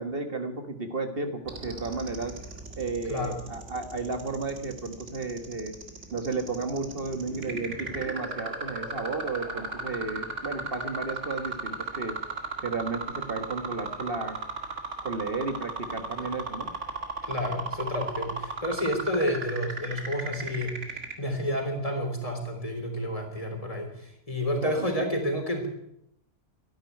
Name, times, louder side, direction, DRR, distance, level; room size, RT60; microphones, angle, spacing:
voice 1, 0.0-2.3 2.8-5.7 6.1-12.2 12.6-13.0 13.3-14.4 15.0-16.7 24.6-24.9, right 3 dB, 50° right, 6 dB, 1.8 m, -33 dB
sound 1, 1.5-21.1, right 3 dB, 85° right, 2.4 m, -35 dB
voice 2, 17.2-25.7, equal, 30° left, 3 dB, 3.5 m, -30 dB
13.0 x 11.5 x 9.4 m, 0.77 s
omnidirectional pair, 1.2 m